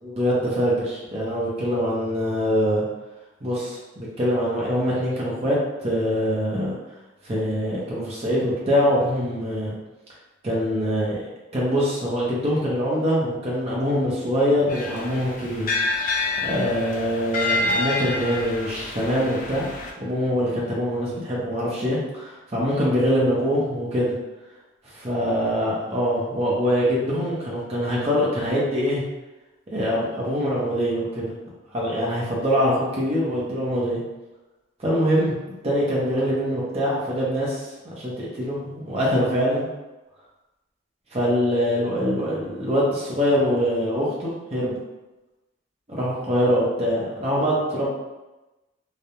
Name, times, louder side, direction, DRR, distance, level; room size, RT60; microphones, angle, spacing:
voice 1, 0.0-2.8 3.4-6.7 7.2-9.7 10.4-11.2 11.5-15.9 16.4-19.7 20.0-24.1 24.9-29.0 29.7-31.2 31.7-34.0 34.8-35.3 35.6-37.7 37.9-39.7 41.1-44.8 45.9-47.9, equal, 30° right, -6 dB, 0.6 m, -24 dB
sound 1, 14.7-19.9, left 2 dB, 40° left, 0.3 m, -28 dB
2.3 x 2.0 x 2.8 m, 1.1 s
head